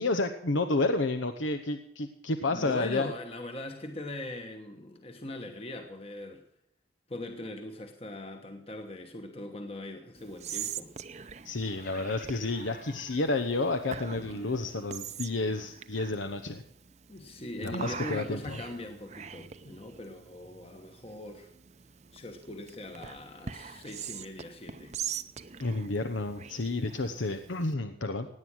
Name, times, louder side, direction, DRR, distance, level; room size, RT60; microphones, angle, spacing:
voice 1, 0.0-3.1 11.4-16.6 17.6-18.6 25.6-28.3, left 2 dB, 90° left, 1.0 m, -30 dB
voice 2, 2.5-6.4 7.1-10.9 17.1-21.5 22.1-25.0, left 1 dB, 30° left, 1.2 m, -41 dB
Whispering, 10.2-27.7, right 7 dB, 35° right, 0.7 m, -43 dB
sound 1, 11.5-14.9, left 4 dB, 50° left, 5.3 m, -52 dB
17.5 x 9.6 x 6.2 m
head